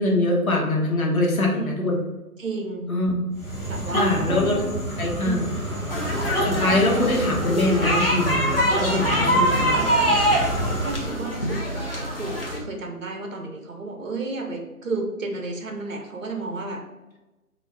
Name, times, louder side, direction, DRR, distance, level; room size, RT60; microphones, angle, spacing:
voice 1, 0.0-2.0 2.9-3.1 3.9-4.6 5.0-5.5 6.4-10.0, left 2 dB, 70° left, -1 dB, 0.9 m, -23 dB
voice 2, 1.3-1.7 2.4-2.9 3.6-4.4 5.2-5.7 6.8-6.9 9.5-9.9 10.8-16.8, right 3 dB, 65° right, 2 dB, 0.7 m, -33 dB
sound 1, 3.3-11.2, right 1 dB, 5° left, 1.3 m, -29 dB
sound 2, 5.9-12.6, equal, 40° left, 0.5 m, -24 dB
2.5 x 2.3 x 3.1 m, 1.1 s
figure-of-eight pair, 155°, 44 cm